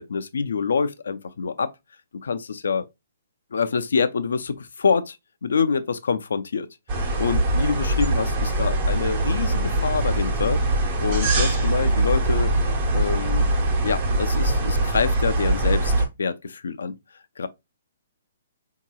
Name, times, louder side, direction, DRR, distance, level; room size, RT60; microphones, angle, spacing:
voice 1, 0.0-1.7 2.2-2.9 3.5-5.2 5.4-6.7 6.9-10.6 11.0-12.5 12.9-13.5 13.8-16.9 17.4-17.5, left 5 dB, 80° left, 0.4 m, -26 dB
sound 1, 6.9-16.1, right 2 dB, 35° right, 1.2 m, -22 dB
3.9 x 2.8 x 2.3 m
hypercardioid pair, 150°, 0 cm